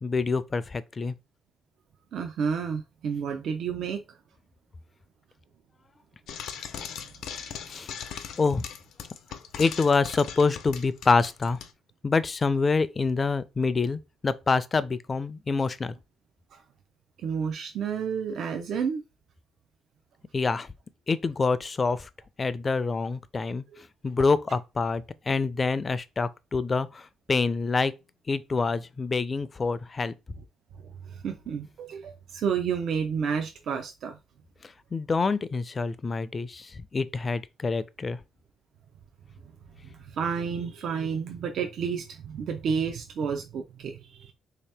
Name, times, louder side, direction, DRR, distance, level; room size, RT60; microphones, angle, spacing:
voice 1, 0.0-1.1 7.7-7.9 8.4-8.6 9.6-11.6 12.0-15.9 20.3-20.7 21.1-22.1 22.4-23.6 24.0-27.9 28.3-30.1 34.6-38.2, left 4 dB, 35° left, 0.4 m, -26 dB
voice 2, 2.1-4.0 16.5-16.6 17.2-19.0 31.1-34.2 39.8-44.3, right 6 dB, 70° right, 0.5 m, -30 dB
Frying (food), 6.3-11.7, left 8 dB, 80° left, 0.6 m, -39 dB
3.4 x 2.8 x 3.3 m
cardioid pair, 90°, 0 cm